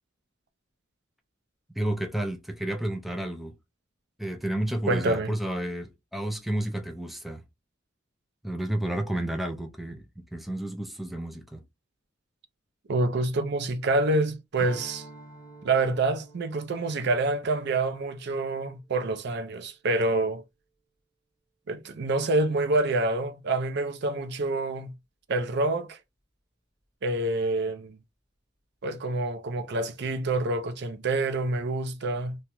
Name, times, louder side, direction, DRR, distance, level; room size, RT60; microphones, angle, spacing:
voice 1, 1.8-3.5 4.2-7.4 8.4-11.6, right 1 dB, ahead, 0.3 m, -31 dB
voice 2, 4.9-5.3 12.9-15.0 15.6-20.4 21.7-24.9 25.3-26.0 27.0-28.0 28.8-32.4, right 2 dB, 60° right, 0.5 m, -27 dB
Strum, 14.5-19.2, right 2 dB, 25° right, 1.7 m, -49 dB
2.9 x 2.3 x 2.9 m
head